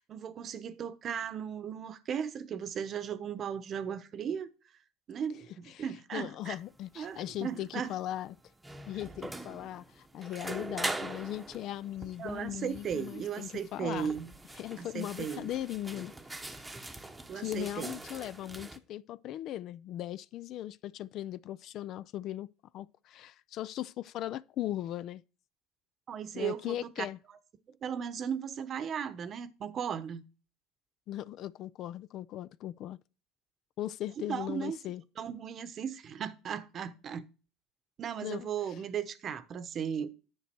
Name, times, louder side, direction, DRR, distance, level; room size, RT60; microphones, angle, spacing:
voice 1, 0.0-4.5 5.1-6.6 7.0-7.9 12.2-14.3 14.8-15.5 17.3-17.9 26.1-26.9 27.8-30.2 34.3-34.8 35.2-37.2 38.0-40.1, right 8 dB, 40° right, 0.9 m, -36 dB
voice 2, 6.1-8.3 8.9-14.1 14.6-16.1 17.3-22.5 22.7-25.2 26.3-27.2 31.1-33.0 33.8-35.0 38.2-38.8, left 13 dB, 50° left, 0.4 m, -38 dB
sound 1, 6.4-18.8, right 2 dB, 10° right, 0.9 m, -43 dB
10.0 x 6.2 x 4.4 m
cardioid pair, 130°, 0 cm